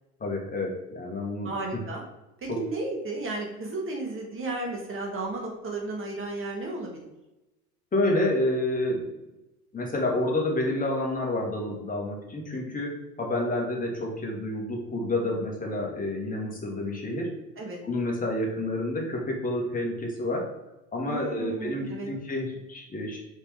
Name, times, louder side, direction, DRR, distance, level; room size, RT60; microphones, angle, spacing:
voice 1, 0.2-1.8 2.5-2.6 7.9-9.0 9.7-17.3 17.8-20.5 20.9-23.2, left 1 dB, 15° left, -1 dB, 2.1 m, -29 dB
voice 2, 1.4-2.0 2.4-7.1 17.6-17.8 21.1-22.1, right 2 dB, 25° right, 0 dB, 1.7 m, -33 dB
6.1 x 5.4 x 3.6 m, 0.99 s
figure-of-eight pair, 75°, 47 cm